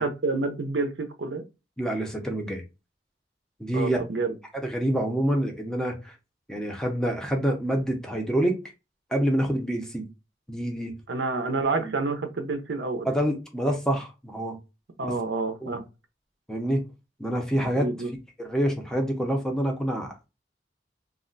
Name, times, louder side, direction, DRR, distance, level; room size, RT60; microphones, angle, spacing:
voice 1, 0.0-1.4 3.7-4.4 11.1-13.2 15.0-15.9 17.8-18.1, right 3 dB, 80° right, 0.6 m, -28 dB
voice 2, 1.8-2.6 3.6-4.0 4.7-6.1 6.5-8.6 9.1-10.1 10.5-11.0 13.1-14.6 15.6-15.8 16.5-16.8 17.2-17.9 18.4-20.3, right 1 dB, 5° left, 0.6 m, -27 dB
2.4 x 2.1 x 3.8 m
head